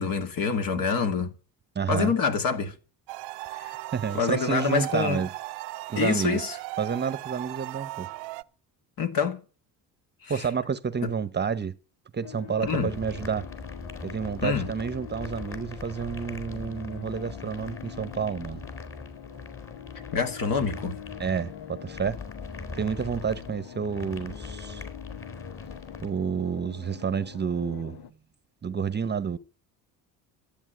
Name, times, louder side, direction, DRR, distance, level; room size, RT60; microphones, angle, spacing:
voice 1, 0.0-1.3 1.9-2.7 3.5-3.8 4.1-5.2 6.0-6.6 9.0-9.4 10.2-10.5 11.0-11.1 12.6-12.9 14.4-14.7 20.1-21.0, left 6 dB, 55° left, 2.4 m, -26 dB
voice 2, 1.7-2.1 3.9-5.3 5.9-6.4 6.8-8.1 10.3-11.7 12.1-13.5 14.0-18.6 21.2-22.2 22.7-24.8 26.0-28.0 28.6-29.4, right 6 dB, 25° right, 1.0 m, -29 dB
sound 1, 3.1-8.4, right 19 dB, 90° right, 0.8 m, -38 dB
sound 2, 12.2-28.1, left 9 dB, 70° left, 1.4 m, -44 dB
sound 3, 12.6-26.1, left 3 dB, 35° left, 4.3 m, -41 dB
14.0 x 8.8 x 9.1 m
cardioid pair, 100°, 40 cm